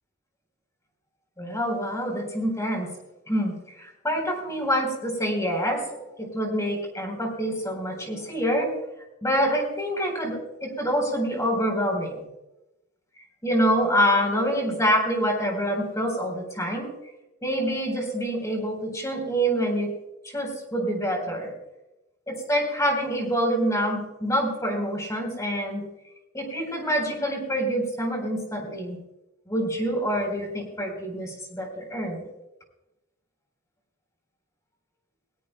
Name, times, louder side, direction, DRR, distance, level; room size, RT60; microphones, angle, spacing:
voice 1, 1.4-2.9 3.3-5.8 6.2-8.7 9.2-12.3 13.4-16.9 17.4-19.9 20.2-21.5 22.3-25.8 26.3-29.0 29.5-32.2, equal, 15° left, 2 dB, 3.9 m, -26 dB
20.5 x 17.0 x 2.2 m, 0.95 s
head